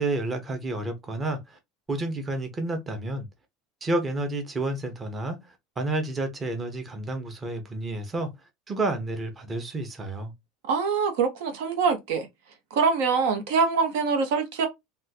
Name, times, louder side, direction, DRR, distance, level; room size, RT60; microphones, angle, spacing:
voice 1, 0.0-1.6 1.9-3.3 3.8-5.4 5.8-8.3 8.7-10.3, right 2 dB, 15° right, 0.7 m, -30 dB
voice 2, 10.7-12.3 12.7-14.7, right 5 dB, 75° right, 0.9 m, -24 dB
3.5 x 2.3 x 2.7 m
cardioid pair, 160°, 0 cm